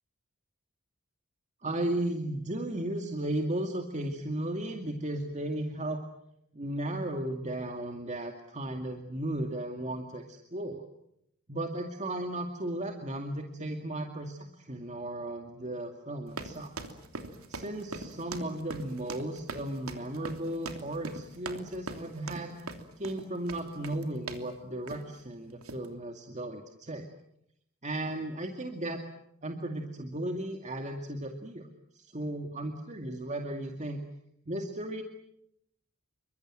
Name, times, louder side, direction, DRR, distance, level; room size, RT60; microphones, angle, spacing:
voice 1, 1.6-6.0 6.5-10.8 11.5-16.7 17.5-22.6 23.0-27.1 27.8-29.0 29.4-31.7 31.9-34.0 34.5-35.0, right 1 dB, 35° right, 4 dB, 2.3 m, -35 dB
sound 1, 16.3-24.5 24.9-25.2 25.6-25.9, right 3 dB, 80° right, 3.1 m, -41 dB
28.5 x 24.5 x 7.8 m, 0.76 s
head